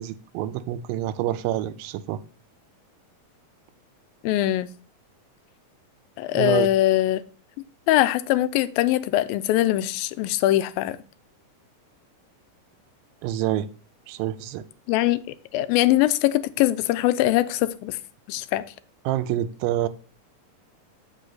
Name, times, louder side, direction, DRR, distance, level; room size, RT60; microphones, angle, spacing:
voice 1, 0.0-2.2 6.3-6.7 13.2-13.7 14.1-14.7 19.1-19.9, right 13 dB, 90° right, 2.4 m, -27 dB
voice 2, 4.2-4.7 6.2-7.2 7.9-11.0 14.9-15.2 15.5-18.0 18.3-18.6, left 14 dB, 90° left, 2.3 m, -22 dB
7.5 x 5.7 x 3.9 m
omnidirectional pair, 4.1 m